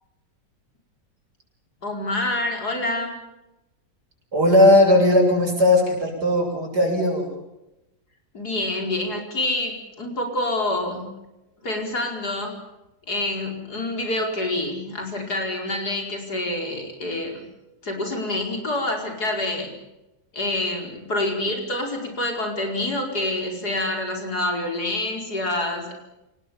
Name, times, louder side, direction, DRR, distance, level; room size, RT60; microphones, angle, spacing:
voice 1, 1.8-3.1 8.3-11.1 11.6-12.5 13.1-17.4 17.8-19.7 20.3-26.0, left 1 dB, 65° left, 3 dB, 5.3 m, -27 dB
voice 2, 4.3-7.3, left 1 dB, 70° right, 1 dB, 7.3 m, -17 dB
27.5 x 19.0 x 7.2 m, 0.95 s
omnidirectional pair, 1.8 m